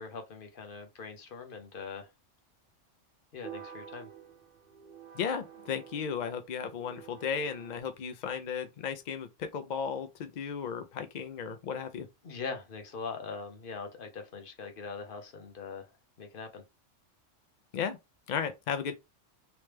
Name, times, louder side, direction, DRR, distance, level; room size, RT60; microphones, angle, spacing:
voice 1, 0.0-2.1 3.3-4.1 12.2-15.9 16.2-16.6, left 5 dB, 50° left, 0.9 m, -41 dB
sound 1, 3.4-7.8, right 8 dB, 50° right, 0.9 m, -49 dB
voice 2, 5.1-12.1 17.7-18.0 18.3-18.9, left 7 dB, 70° left, 0.4 m, -35 dB
3.1 x 3.0 x 3.3 m
omnidirectional pair, 1.3 m